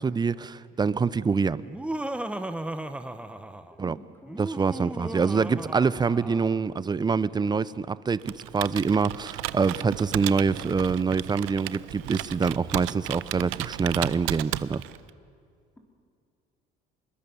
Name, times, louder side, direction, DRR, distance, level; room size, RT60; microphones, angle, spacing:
voice 1, 0.0-1.6 3.8-4.0 4.4-14.8, right 5 dB, 20° right, 18 dB, 0.6 m, -25 dB
Laughter, 1.6-3.8 4.3-6.6, right 1 dB, 5° right, 1.0 m, -35 dB
voice 2, 3.7-4.4 4.9-5.1, left 1 dB, 10° left, 1 dB, 3.5 m, -47 dB
Computer keyboard, 8.2-15.1, right 18 dB, 85° right, 0.6 m, -35 dB
25.0 x 21.5 x 7.0 m, 2.3 s
cardioid pair, 105°, 20 cm